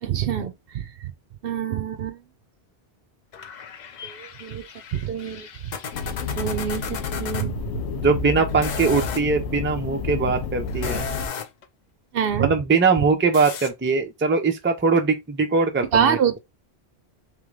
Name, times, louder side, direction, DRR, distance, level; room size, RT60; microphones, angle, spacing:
voice 1, 0.0-1.1 1.4-2.2 4.0-5.5 6.3-7.5 12.1-12.5 15.9-16.4, right 8 dB, 65° right, 0.8 m, -26 dB
sound 1, 3.3-7.5 8.5-9.3 10.7-11.7 13.3-13.7, left 7 dB, 55° left, 0.6 m, -35 dB
sound 2, 5.9-11.3, left 5 dB, 90° left, 0.9 m, -30 dB
voice 2, 7.9-11.1 12.4-16.2, right 4 dB, 15° right, 0.5 m, -21 dB
3.7 x 3.3 x 3.2 m
omnidirectional pair, 1.1 m